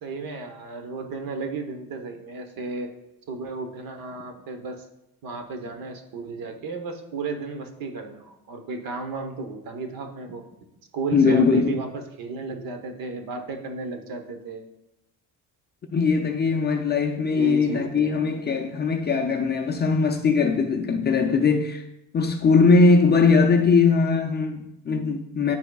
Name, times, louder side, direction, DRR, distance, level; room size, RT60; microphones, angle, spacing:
voice 1, 0.0-2.9 3.3-4.8 5.2-10.4 10.9-14.6 17.3-18.2, right 3 dB, 60° right, 1.0 m, -33 dB
voice 2, 11.1-11.8 15.9-21.8 22.1-25.6, left 4 dB, 25° left, 0.4 m, -20 dB
9.9 x 4.4 x 2.3 m
cardioid pair, 135°, 39 cm